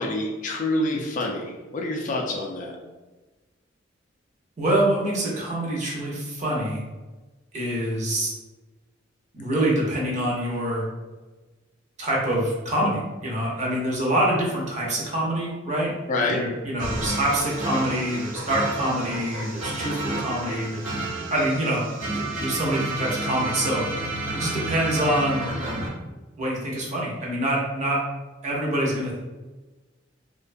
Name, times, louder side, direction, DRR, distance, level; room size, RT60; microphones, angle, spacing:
voice 1, 0.0-2.8 16.1-16.4, left 2 dB, 45° left, 0 dB, 0.3 m, -27 dB
voice 2, 4.6-6.8 7.5-8.3 9.3-10.9 12.0-15.9 16.2-20.8 21.3-24.0 24.3-25.4 26.4-28.0 28.4-29.2, right 1 dB, 40° right, -3 dB, 0.6 m, -25 dB
sound 1, 16.8-25.9, right 2 dB, 70° right, 0.9 m, -31 dB
2.4 x 2.2 x 2.5 m, 1.2 s
head